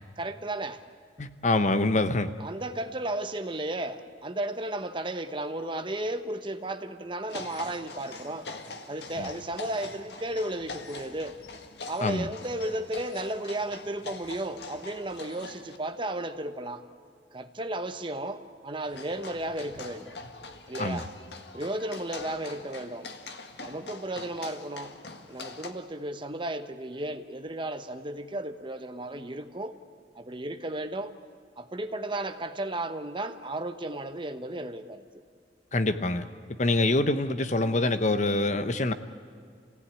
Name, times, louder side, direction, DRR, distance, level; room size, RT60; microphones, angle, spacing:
voice 1, 0.2-0.8 2.4-8.5 8.9-11.4 11.9-16.8 17.3-20.1 20.7-21.1 21.5-23.1 23.6-24.9 25.3-29.8 30.1-31.1 31.6-35.2, right 1 dB, 25° right, 9 dB, 1.0 m, -34 dB
voice 2, 1.2-2.3 9.2-9.3 12.0-12.3 20.8-21.0 35.7-36.3 36.6-38.9, left 2 dB, 40° left, 10 dB, 0.9 m, -25 dB
sound 1, 7.3-15.8 18.8-25.7, left 3 dB, 65° left, 1.7 m, -43 dB
28.0 x 17.0 x 9.8 m, 2.2 s
head